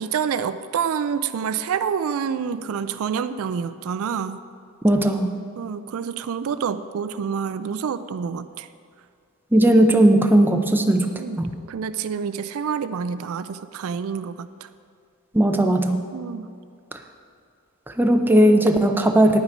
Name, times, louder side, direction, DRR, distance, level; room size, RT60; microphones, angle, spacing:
voice 1, 0.0-4.4 5.6-8.7 11.2-11.4 11.7-14.7 16.1-16.5, right 7 dB, 65° right, 12 dB, 0.3 m, -27 dB
voice 2, 4.8-5.3 9.5-11.5 15.3-16.0 18.0-19.4, right 1 dB, 10° right, 4 dB, 0.6 m, -17 dB
9.7 x 9.0 x 5.2 m, 2.4 s
head